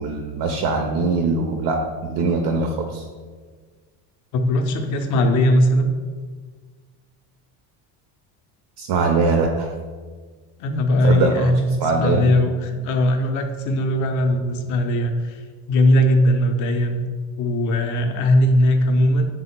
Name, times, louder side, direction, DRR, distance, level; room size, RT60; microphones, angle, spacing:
voice 1, 0.0-3.0 8.8-9.7 11.0-11.5 11.8-12.3, right 4 dB, 65° right, 3 dB, 0.5 m, -22 dB
voice 2, 4.3-5.9 10.6-17.0 17.4-19.3, left 1 dB, 45° left, 5 dB, 0.5 m, -19 dB
3.5 x 2.0 x 4.2 m, 1.5 s
supercardioid pair, 110°, 42 cm